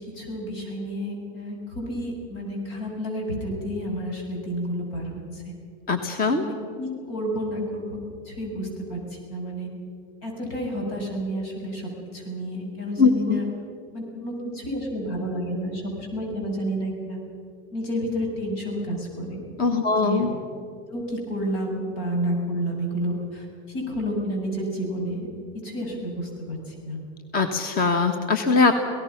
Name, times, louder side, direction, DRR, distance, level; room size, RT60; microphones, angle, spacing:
voice 1, 0.0-5.4 6.4-8.0 8.3-9.7 10.2-13.5 13.9-15.8 16.1-17.2 17.7-19.4 20.0-20.3 20.9-25.3 25.6-27.0, equal, 75° left, 1 dB, 7.4 m, -30 dB
voice 2, 5.9-6.4 13.0-13.4 19.6-20.3 27.3-28.8, left 4 dB, 30° left, 7 dB, 1.4 m, -21 dB
28.0 x 18.0 x 6.0 m, 2.4 s
supercardioid pair, 140°, 30 cm